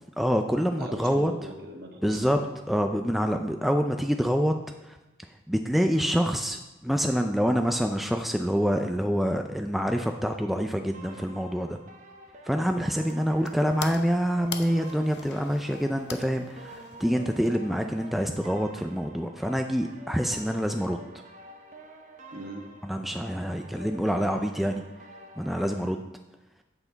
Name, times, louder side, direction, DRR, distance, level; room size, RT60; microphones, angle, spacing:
voice 1, 0.2-1.3 2.0-2.4 2.7-4.5 4.8-5.0 5.5-11.8 12.4-21.0 22.8-24.8 25.4-26.0, equal, ahead, 4 dB, 0.4 m, -26 dB
voice 2, 0.8-2.5 22.3-22.6, right 1 dB, 60° right, 1 dB, 1.4 m, -40 dB
sound 1, 10.9-25.9, right 1 dB, 40° right, 0.8 m, -48 dB
sound 2, 12.6-18.0, left 6 dB, 75° left, 0.8 m, -43 dB
8.3 x 7.9 x 4.0 m, 1.0 s
head